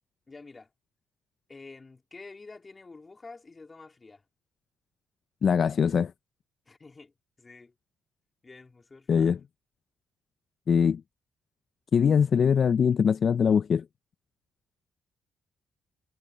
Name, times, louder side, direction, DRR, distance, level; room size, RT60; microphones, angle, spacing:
voice 1, 0.3-0.7 1.5-4.2 6.7-7.1 7.4-7.7 8.4-9.3, left 3 dB, 25° left, 3.0 m, -48 dB
voice 2, 5.4-6.1 9.1-9.4 10.7-11.0 11.9-13.8, left 7 dB, 50° left, 0.4 m, -22 dB
cardioid pair, 90°, 0 cm